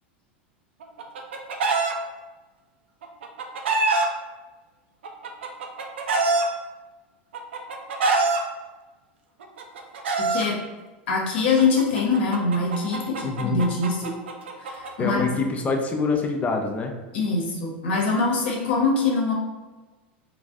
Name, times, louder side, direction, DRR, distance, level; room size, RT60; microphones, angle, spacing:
Chicken rooster, 0.8-1.9 3.0-4.1 5.0-6.5 7.3-8.4 9.4-10.5 11.6-14.9, right 3 dB, 85° right, 0.4 m, -25 dB
voice 1, 10.2-10.6 11.1-14.1 14.6-15.4 17.1-19.3, left 4 dB, 75° left, -1 dB, 0.8 m, -23 dB
voice 2, 13.2-13.6 15.0-17.0, left 4 dB, 25° left, 3 dB, 0.5 m, -25 dB
2.4 x 2.1 x 3.5 m, 1.2 s
hypercardioid pair, 105°, 6 cm